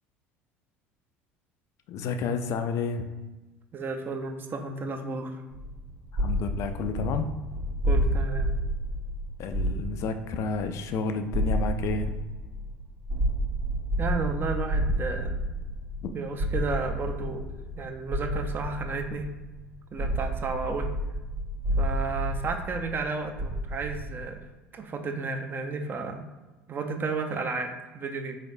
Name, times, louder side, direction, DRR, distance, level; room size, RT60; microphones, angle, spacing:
voice 1, 1.9-3.1 6.2-7.3 9.4-12.1 16.0-16.1, left 4 dB, 45° left, 8 dB, 0.3 m, -30 dB
voice 2, 3.7-5.4 7.9-8.5 14.0-15.4 16.1-17.4 17.8-19.3 19.9-20.9 21.8-24.4 24.7-26.2 26.7-28.4, right 4 dB, 30° right, 4 dB, 0.5 m, -32 dB
sound 1, 5.5-19.6 20.0-24.2, equal, 50° right, 1.0 m, -30 dB
4.1 x 3.2 x 2.6 m, 1.2 s
figure-of-eight pair, 65°, 7 cm